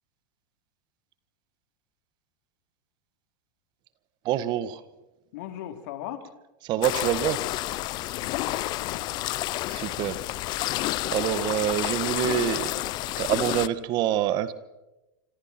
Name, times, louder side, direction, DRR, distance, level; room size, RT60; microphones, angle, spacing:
voice 1, 4.3-4.8 6.7-7.4 9.7-10.2 11.1-12.7 13.2-14.5, right 12 dB, 45° right, 14 dB, 1.7 m, -26 dB
voice 2, 5.3-6.3 8.1-9.1, left 11 dB, 65° left, 7 dB, 3.6 m, -39 dB
sound 1, 6.8-13.7, left 17 dB, 45° left, 0.9 m, -30 dB
27.0 x 26.5 x 4.5 m, 0.99 s
hypercardioid pair, 105°, 10 cm